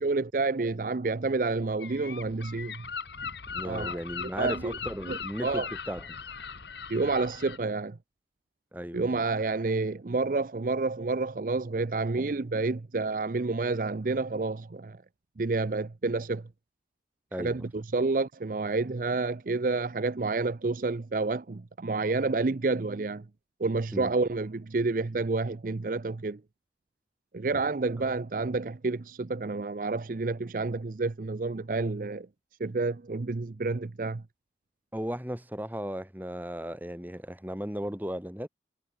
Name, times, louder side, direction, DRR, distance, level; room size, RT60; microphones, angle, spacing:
voice 1, 0.0-2.8 3.6-4.7 5.1-5.7 6.9-8.0 8.9-15.0 15.4-16.4 17.4-23.2 23.6-26.4 27.3-32.3 32.6-34.2, right 3 dB, 50° right, 0.6 m, -29 dB
Gull seagull, 1.8-7.6, left 6 dB, 75° left, 1.6 m, -39 dB
voice 2, 3.5-6.0 8.7-9.1 17.3-17.7 23.9-24.1 27.5-27.6 28.0-28.1 34.9-38.5, equal, 10° right, 2.6 m, -36 dB
head